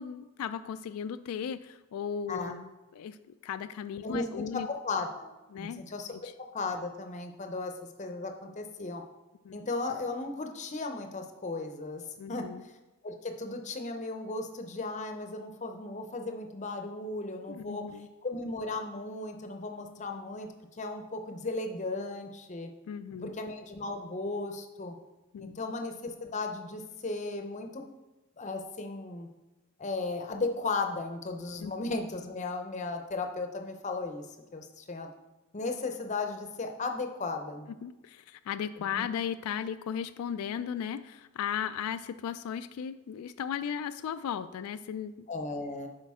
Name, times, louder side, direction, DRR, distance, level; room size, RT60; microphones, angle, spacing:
voice 1, 0.0-4.7 5.5-5.8 6.2-6.3 9.4-9.6 12.2-12.6 17.5-18.1 22.9-23.4 25.3-25.6 31.6-31.7 37.8-45.3, left 8 dB, 85° left, 14 dB, 0.3 m, -36 dB
voice 2, 4.0-5.3 5.6-7.7 8.0-9.0 9.5-12.0 12.3-12.7 13.0-17.8 18.2-20.5 20.8-22.7 23.2-24.9 25.4-27.8 28.4-29.3 29.8-34.2 34.5-35.1 35.5-37.7 38.9-39.1 45.3-45.9, left 3 dB, 35° left, 5 dB, 0.6 m, -36 dB
8.3 x 5.1 x 3.6 m, 1.1 s
head